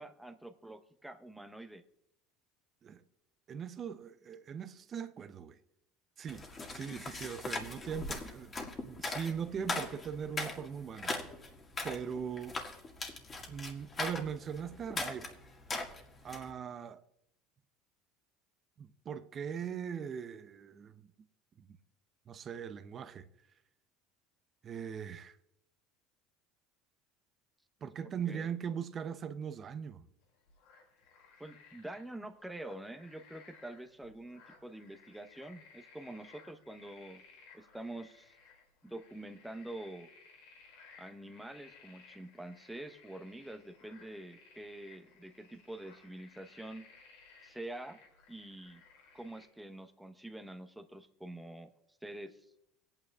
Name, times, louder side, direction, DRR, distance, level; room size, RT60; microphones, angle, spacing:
voice 1, 0.0-1.8 27.8-28.5 31.4-37.2 37.5-38.3 38.8-40.1 41.0-46.9 47.4-48.0 48.3-48.8 49.1-51.7 52.0-52.5, right 1 dB, 5° right, 0.9 m, -46 dB
voice 2, 3.5-5.6 6.2-8.5 8.8-11.2 11.8-12.6 13.5-15.4 16.2-17.0 18.8-21.1 21.6-21.8 22.3-23.3 24.6-25.4 27.8-30.0, right 7 dB, 40° right, 0.7 m, -40 dB
sound 1, 6.3-16.5, left 3 dB, 30° left, 1.8 m, -40 dB
sound 2, 30.2-49.5, left 5 dB, 80° left, 2.9 m, -60 dB
21.5 x 8.9 x 2.4 m
supercardioid pair, 100°, 0 cm